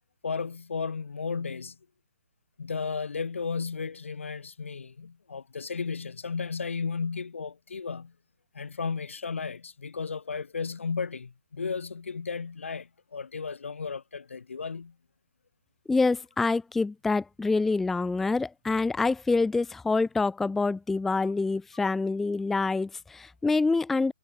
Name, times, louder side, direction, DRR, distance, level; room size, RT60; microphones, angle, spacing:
voice 1, 0.2-1.8 2.6-8.1 8.5-14.9, left 5 dB, 80° left, 4.5 m, -34 dB
voice 2, 15.9-24.1, left 3 dB, 5° left, 0.4 m, -26 dB
hypercardioid pair, 155°, 7 cm